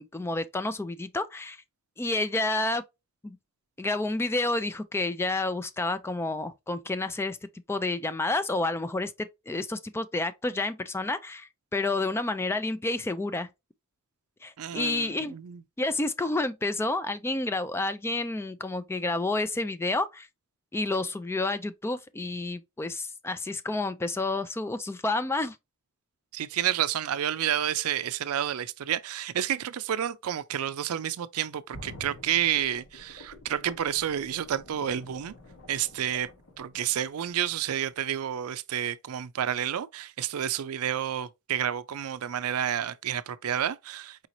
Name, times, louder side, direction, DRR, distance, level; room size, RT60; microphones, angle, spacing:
voice 1, 0.0-1.6 2.0-2.8 3.2-3.4 3.8-7.4 7.7-13.5 14.4-15.4 15.8-20.3 20.7-25.6, left 2 dB, 10° left, 0.3 m, -30 dB
voice 2, 14.6-15.6 26.3-35.3 35.7-36.3 36.6-44.3, right 10 dB, 80° right, 0.4 m, -30 dB
sound 1, 31.7-37.5 37.9-38.0, left 1 dB, 70° left, 1.3 m, -49 dB
4.8 x 3.0 x 2.6 m
head